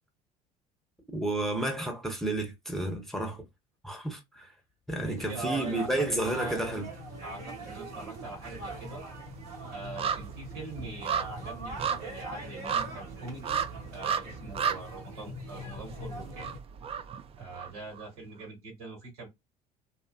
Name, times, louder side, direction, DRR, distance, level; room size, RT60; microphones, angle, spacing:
voice 1, 1.1-3.4 3.8-4.5 4.9-6.9, right 1 dB, ahead, 0.9 m, -31 dB
voice 2, 5.0-6.6 7.2-9.0 9.7-13.6 13.9-16.5 17.4-19.3, right 3 dB, 75° right, 1.7 m, -42 dB
sound 1, 5.1-16.6, right 1 dB, 60° right, 1.2 m, -43 dB
sound 2, 7.0-7.8 8.1-18.1 18.4-18.5, right 7 dB, 30° right, 0.4 m, -35 dB
2.7 x 2.4 x 2.2 m
figure-of-eight pair, 60°, 19 cm